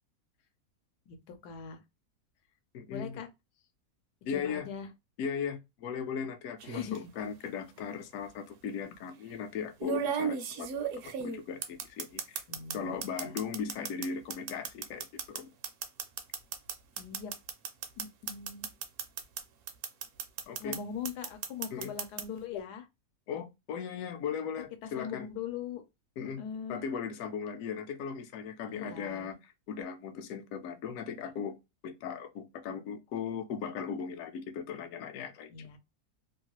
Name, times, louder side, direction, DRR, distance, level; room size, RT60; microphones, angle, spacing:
voice 1, 1.1-1.8 2.9-3.3 4.3-4.9 6.6-7.0 12.5-13.0 13.2-13.4 17.0-17.3 18.0-18.7 20.6-22.9 24.8-25.8 26.2-26.8 28.7-29.3 35.5-35.8, left 7 dB, 90° left, 1.2 m, -41 dB
voice 2, 2.7-3.2 4.3-4.7 5.2-10.7 11.2-12.4 12.7-15.5 20.5-20.8 21.7-21.9 23.3-25.3 26.2-26.4 26.7-31.6 31.8-35.8, left 6 dB, 70° left, 0.9 m, -38 dB
sound 1, 6.6-7.0 8.2-8.3 9.8-12.8 13.0-19.4 19.7-20.8 21.0-22.2, right 7 dB, 65° right, 0.8 m, -35 dB
2.9 x 2.3 x 2.9 m
omnidirectional pair, 1.6 m